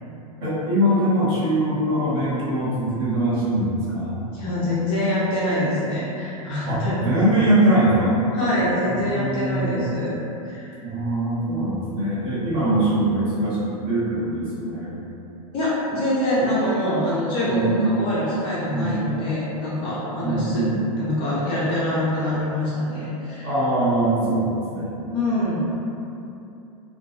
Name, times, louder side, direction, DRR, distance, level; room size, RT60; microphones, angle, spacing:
voice 1, 0.4-4.2 6.7-8.1 8.8-9.8 10.8-14.9 17.5-17.8 18.7-19.0 20.2-20.8 23.4-25.0, right 1 dB, 40° right, -10 dB, 1.0 m, -22 dB
voice 2, 4.3-7.1 8.3-10.1 10.4-10.7 15.5-20.7 21.0-23.5 25.1-25.7, left 1 dB, 25° left, -8 dB, 0.4 m, -25 dB
2.2 x 2.1 x 3.0 m, 2.8 s
supercardioid pair, 155°, 19 cm